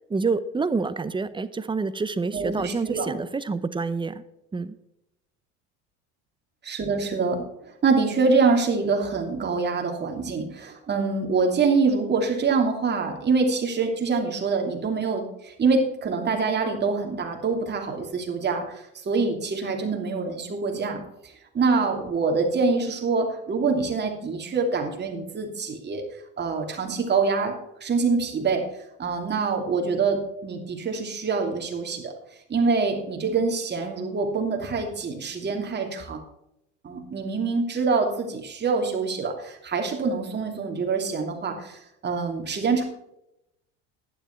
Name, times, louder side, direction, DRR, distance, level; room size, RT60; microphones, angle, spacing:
voice 1, 0.1-4.2 4.5-4.7, right 4 dB, 15° right, 14 dB, 0.8 m, -27 dB
voice 2, 2.3-3.2 6.6-7.4 7.8-21.0 21.5-26.0 26.4-28.7 29.0-32.1 32.5-36.2 36.8-42.8, right 4 dB, 30° right, 2 dB, 2.9 m, -25 dB
11.5 x 10.5 x 4.6 m, 0.83 s
supercardioid pair, 100°, 33 cm